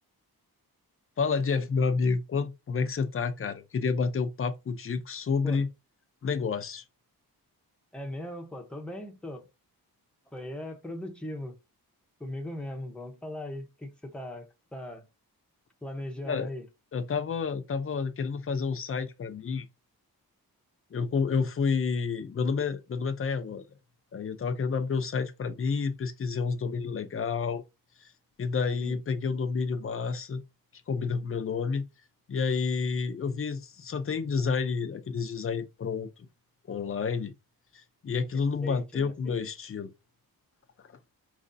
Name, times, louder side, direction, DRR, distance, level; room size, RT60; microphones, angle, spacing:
voice 1, 1.2-5.7 6.2-6.8 16.2-16.5 16.9-19.7 20.9-23.6 24.1-27.6 28.4-30.4 30.9-31.8 32.3-36.1 36.7-37.3 38.0-39.9, left 5 dB, 35° left, 0.6 m, -29 dB
voice 2, 7.9-9.4 10.3-11.6 12.2-15.1 15.8-16.7 28.8-29.0 38.6-39.4, left 1 dB, 5° left, 0.8 m, -39 dB
5.1 x 3.2 x 2.6 m
wide cardioid pair, 140°, 37 cm